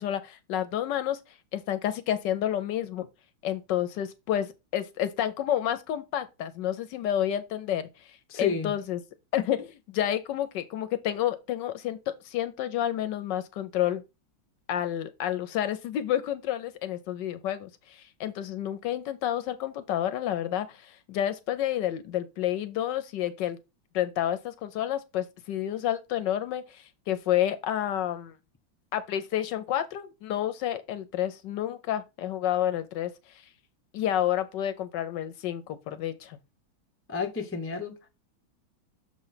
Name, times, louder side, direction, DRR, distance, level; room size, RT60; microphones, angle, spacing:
voice 1, 0.0-3.1 3.4-9.0 9.3-14.0 14.7-23.6 23.9-28.3 28.9-33.5 33.9-36.4, left 11 dB, 70° left, 1.1 m, -30 dB
voice 2, 8.3-8.7 37.1-37.9, left 5 dB, 20° left, 0.3 m, -30 dB
6.7 x 3.1 x 5.6 m
omnidirectional pair, 2.2 m